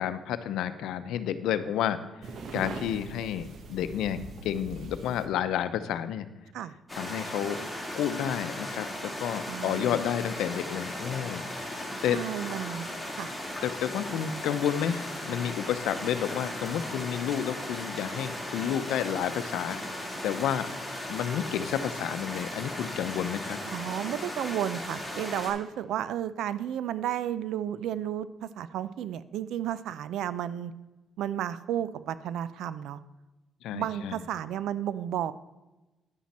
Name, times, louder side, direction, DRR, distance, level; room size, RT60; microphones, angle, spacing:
voice 1, 0.0-6.3 6.9-7.6 7.9-12.2 13.6-20.7 21.1-23.6 33.6-34.2, left 10 dB, 85° left, 12 dB, 0.7 m, -31 dB
sound 1, 2.2-5.3, right 4 dB, 65° right, 1.1 m, -41 dB
sound 2, 6.9-25.5, left 1 dB, ahead, 3.7 m, -37 dB
voice 2, 9.5-10.0 12.1-12.9 13.2-13.3 23.7-30.7 31.2-33.0 33.7-35.3, right 10 dB, 80° right, 15 dB, 0.5 m, -32 dB
10.0 x 9.4 x 4.3 m, 1.1 s
cardioid pair, 90°, 0 cm